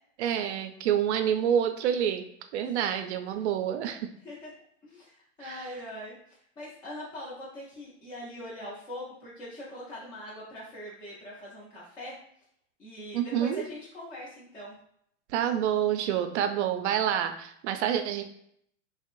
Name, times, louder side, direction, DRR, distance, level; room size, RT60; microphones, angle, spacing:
voice 1, 0.2-2.2 2.5-4.1 5.4-5.7 13.1-13.6 15.3-18.2, right 9 dB, 65° right, 8 dB, 0.5 m, -27 dB
voice 2, 4.8-12.1 12.8-14.7, left 1 dB, 15° left, -7 dB, 0.3 m, -42 dB
2.5 x 2.0 x 3.0 m, 0.69 s
supercardioid pair, 135°, 37 cm